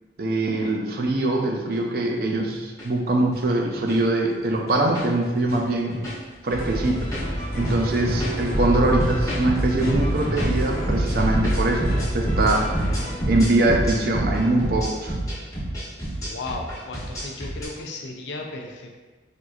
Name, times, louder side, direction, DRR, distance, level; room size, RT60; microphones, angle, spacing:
voice 1, 0.2-6.0 6.4-7.1 7.5-11.9 12.1-12.6 13.3-15.1, right 2 dB, 55° right, 1 dB, 0.4 m, -23 dB
sound 1, 1.6-1.7 2.4-2.8 3.2-3.4 3.8-3.9 4.6-5.1 5.4-5.6 5.9-6.3 6.7-17.7, right 1 dB, 20° left, 0.9 m, -27 dB
sound 2, 6.5-13.2, equal, 45° left, 0.8 m, -28 dB
voice 2, 7.7-8.0 16.2-19.0, left 2 dB, 80° left, 1 dB, 0.5 m, -35 dB
4.4 x 2.5 x 2.3 m, 1.3 s
head